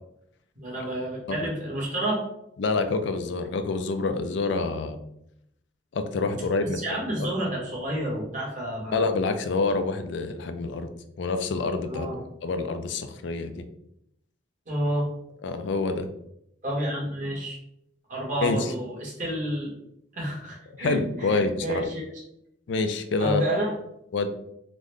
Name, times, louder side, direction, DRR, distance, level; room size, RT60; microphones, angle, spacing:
voice 1, 0.5-2.3 6.6-9.0 11.8-12.2 14.7-15.1 16.6-17.6 18.1-19.7 20.1-22.0 23.2-23.7, right 1 dB, 40° right, -4 dB, 1.3 m, -30 dB
voice 2, 2.6-5.0 5.9-6.8 8.9-10.9 11.2-12.1 12.4-13.6 15.4-16.1 18.4-18.7 20.8-21.8 22.7-23.4 24.1-24.3, left 3 dB, 65° left, 8 dB, 0.4 m, -27 dB
3.8 x 2.1 x 3.2 m, 0.77 s
head